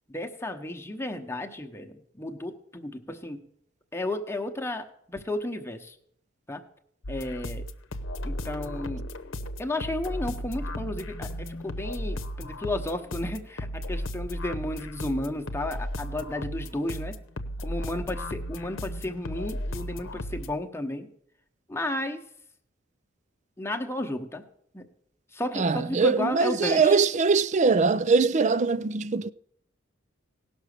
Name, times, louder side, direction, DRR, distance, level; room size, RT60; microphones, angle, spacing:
voice 1, 0.1-3.4 3.9-5.9 6.5-6.6 7.1-7.6 8.2-9.1 9.6-17.2 17.6-21.1 21.7-22.2 23.6-24.4 24.7-24.9 25.3-27.0, left 1 dB, 15° left, 1.0 m, -33 dB
sound 1, 7.0-20.5, equal, 75° left, 0.9 m, -35 dB
voice 2, 25.6-29.3, right 4 dB, 35° right, 0.4 m, -22 dB
17.5 x 6.2 x 6.7 m
head